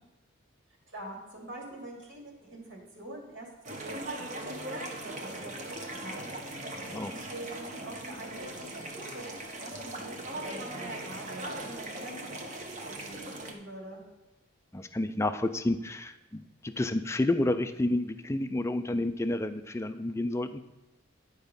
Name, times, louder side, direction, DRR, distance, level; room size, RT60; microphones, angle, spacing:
voice 1, 0.9-6.2 6.5-14.0, right 1 dB, 65° right, -2 dB, 2.7 m, -45 dB
sound 1, 3.6-13.5, right 1 dB, 35° right, 1.0 m, -39 dB
voice 2, 14.7-20.6, left 1 dB, 15° left, 9 dB, 0.4 m, -30 dB
10.5 x 4.8 x 5.2 m, 1.1 s
head